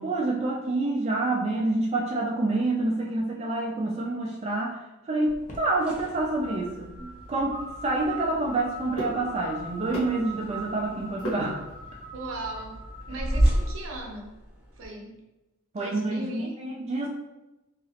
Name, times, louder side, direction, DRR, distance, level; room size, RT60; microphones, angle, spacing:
voice 1, 0.0-4.8 5.0-6.9 7.3-11.6 13.1-13.2 15.7-17.1, right 2 dB, 30° right, -3 dB, 0.4 m, -27 dB
sound 1, 5.3-13.7, right 1 dB, 35° left, 0.6 m, -42 dB
sound 2, 5.5-14.9, right 1 dB, 5° right, 0.8 m, -33 dB
sound 3, 7.0-12.1, right 2 dB, 70° left, 1.1 m, -38 dB
voice 2, 12.1-12.8 13.1-14.3 14.8-15.2 15.8-16.5, right 1 dB, 65° right, 0 dB, 0.7 m, -38 dB
2.9 x 2.8 x 2.8 m, 1.0 s
head